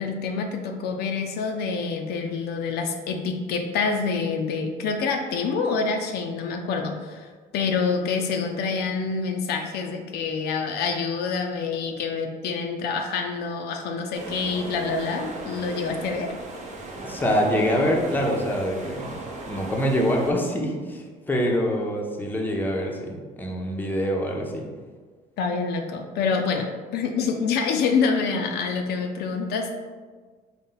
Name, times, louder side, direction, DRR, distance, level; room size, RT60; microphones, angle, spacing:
voice 1, 0.0-16.3 25.4-29.7, left 5 dB, 75° left, 4 dB, 0.4 m, -27 dB
sound 1, 14.1-20.3, right 2 dB, 45° right, 0.7 m, -37 dB
voice 2, 17.0-19.1 19.5-24.7, equal, 10° left, 0 dB, 0.6 m, -25 dB
4.0 x 2.2 x 3.8 m, 1.5 s
cardioid pair, 110°, 17 cm